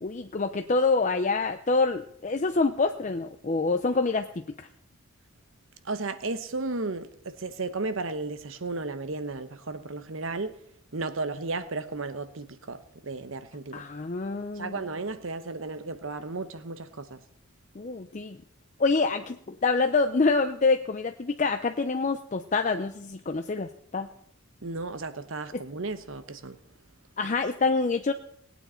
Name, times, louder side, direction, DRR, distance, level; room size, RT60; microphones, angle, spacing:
voice 1, 0.0-4.7 13.7-14.8 17.8-18.4 18.8-24.1 25.5-25.6 27.2-28.1, left 3 dB, 35° left, 0.5 m, -26 dB
voice 2, 5.8-10.6 10.9-13.8 14.6-17.2 24.6-26.6, right 3 dB, 65° right, 0.9 m, -34 dB
19.0 x 9.1 x 4.4 m
head